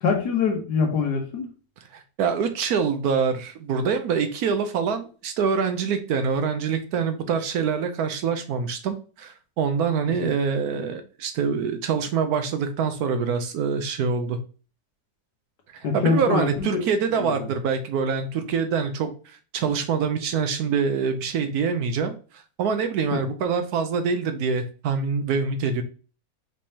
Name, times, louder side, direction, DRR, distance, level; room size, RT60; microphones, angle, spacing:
voice 1, 0.0-1.5 10.1-10.3 15.8-16.6 17.2-17.3 23.1-23.2, left 5 dB, 75° left, 2 dB, 1.6 m, -24 dB
voice 2, 1.9-14.4 15.7-25.8, right 6 dB, 70° right, 8 dB, 1.0 m, -25 dB
5.2 x 3.4 x 2.8 m, 0.37 s
omnidirectional pair, 1.8 m